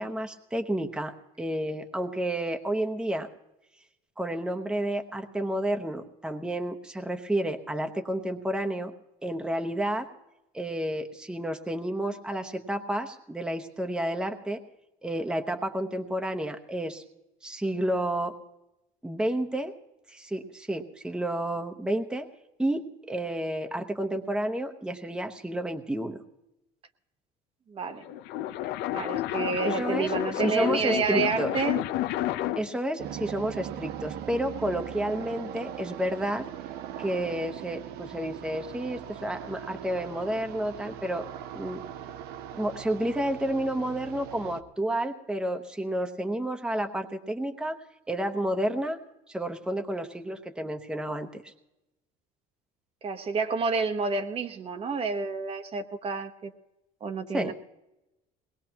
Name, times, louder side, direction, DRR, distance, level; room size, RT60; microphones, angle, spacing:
voice 1, 0.0-3.3 4.2-8.9 9.2-10.1 10.5-14.6 15.0-17.0 17.4-18.3 19.0-19.7 20.1-22.3 22.6-26.2 29.6-30.1 30.4-31.5 32.6-36.4 37.0-41.3 41.5-41.8 42.5-47.8 48.1-49.0 49.3-51.5 57.3-57.5, right 1 dB, 5° right, 5 dB, 0.9 m, -30 dB
voice 2, 27.7-28.1 28.9-31.8 53.0-56.5 57.0-57.5, right 4 dB, 35° right, 7 dB, 1.0 m, -29 dB
sound 1, 27.9-32.8, left 13 dB, 75° left, 0.6 m, -30 dB
sound 2, 33.0-44.6, right 10 dB, 70° right, 0.8 m, -40 dB
21.5 x 19.5 x 2.9 m, 0.94 s
cardioid pair, 120°, 17 cm